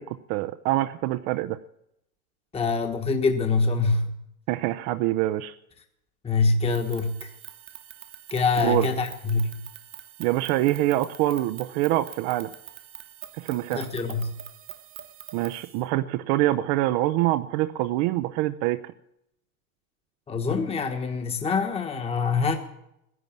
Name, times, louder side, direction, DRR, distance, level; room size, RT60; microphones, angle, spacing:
voice 1, 0.0-1.6 4.5-5.5 8.6-8.9 10.2-12.5 13.3-13.9 15.3-18.9, right 16 dB, 50° right, 10 dB, 0.8 m, -25 dB
voice 2, 2.5-4.1 6.2-7.3 8.3-9.5 13.7-14.3 20.3-22.6, left 4 dB, 15° left, 5 dB, 1.3 m, -25 dB
sound 1, 6.7-15.8, right 11 dB, 30° right, 1.1 m, -45 dB
16.0 x 11.0 x 7.3 m, 0.80 s
supercardioid pair, 120°, 42 cm